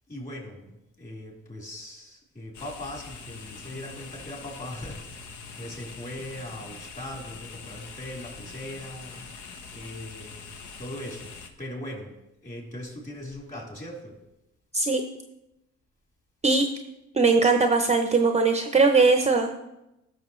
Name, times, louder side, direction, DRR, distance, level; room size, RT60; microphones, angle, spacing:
voice 1, 0.1-9.3 9.7-11.3 11.6-14.2, left 1 dB, 25° left, -2 dB, 3.8 m, -40 dB
sound 1, 2.5-11.5, left 5 dB, 75° left, 1.1 m, -43 dB
voice 2, 17.1-19.6, right 4 dB, 20° right, 6 dB, 0.6 m, -20 dB
14.5 x 6.5 x 3.1 m, 0.90 s
cardioid pair, 90°, 30 cm